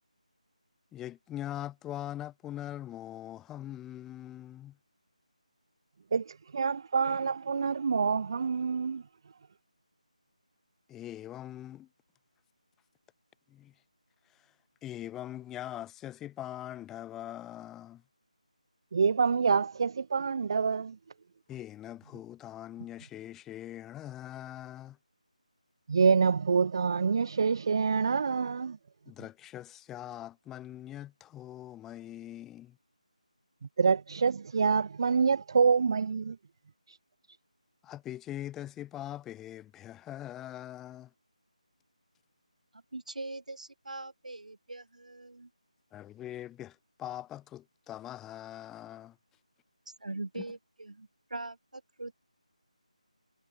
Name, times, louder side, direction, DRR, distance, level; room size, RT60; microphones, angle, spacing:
voice 1, 0.9-4.8 10.9-11.9 13.5-13.7 14.3-14.5 14.8-18.0 21.5-25.0 29.1-32.8 37.8-41.1 45.9-49.2 50.3-50.5, left 12 dB, 10° left, 2.6 m, -42 dB
voice 2, 6.1-9.0 18.9-21.0 25.9-28.8 33.8-36.4 36.9-37.0, right 5 dB, 35° right, 0.5 m, -26 dB
voice 3, 42.9-45.5 50.0-52.2, right 2 dB, 70° right, 1.5 m, -42 dB
figure-of-eight pair, 160°, 4 cm